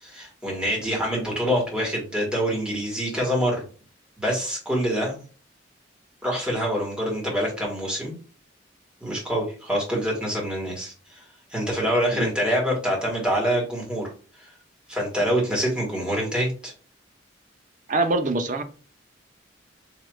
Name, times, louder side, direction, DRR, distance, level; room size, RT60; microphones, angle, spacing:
voice 1, 0.0-3.7 4.2-5.2 6.2-8.1 9.0-11.2 11.5-14.1 14.4-14.5 14.9-16.7, equal, 5° right, -2 dB, 1.8 m, -26 dB
voice 2, 17.9-18.6, right 2 dB, 40° right, 6 dB, 0.6 m, -24 dB
4.7 x 3.2 x 2.3 m, 0.37 s
head